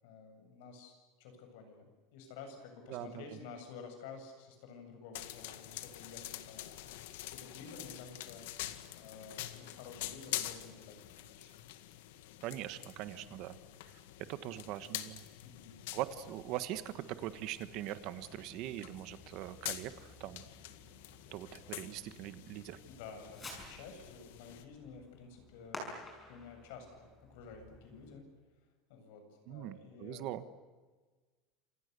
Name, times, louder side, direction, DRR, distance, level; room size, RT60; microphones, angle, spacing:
voice 1, 0.0-6.8 7.0-8.5 8.9-11.5 15.4-15.8 22.9-28.2 28.9-30.3, left 5 dB, 65° left, 6 dB, 7.7 m, -51 dB
voice 2, 2.9-3.4 12.4-13.6 13.8-14.0 14.3-15.2 15.9-20.4 21.3-22.8 29.5-30.6, right 13 dB, 45° right, 12 dB, 1.3 m, -42 dB
sound 1, 5.1-24.6, left 14 dB, 85° left, 1.9 m, -46 dB
Fireworks, 17.5-28.2, left 1 dB, 15° left, 6.2 m, -53 dB
29.0 x 27.5 x 6.9 m, 1.4 s
cardioid pair, 175°, 0 cm